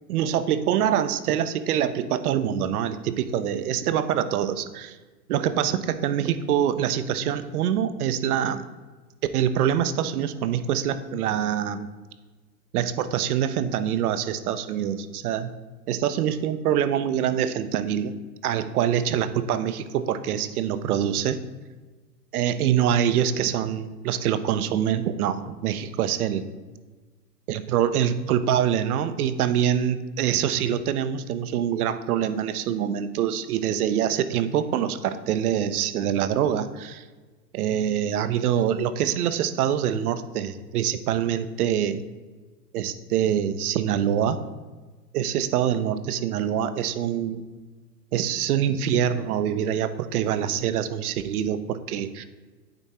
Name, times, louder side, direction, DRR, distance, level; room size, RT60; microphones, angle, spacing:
voice 1, 0.1-5.0 5.3-8.6 9.3-11.9 12.7-15.5 15.9-18.1 18.4-21.4 22.3-26.4 27.5-37.0 37.5-42.0 42.7-44.4 45.1-47.4 48.1-52.2, right 9 dB, 65° right, 12 dB, 0.7 m, -25 dB
9.0 x 3.6 x 4.3 m, 1.3 s
hypercardioid pair, 125°, 49 cm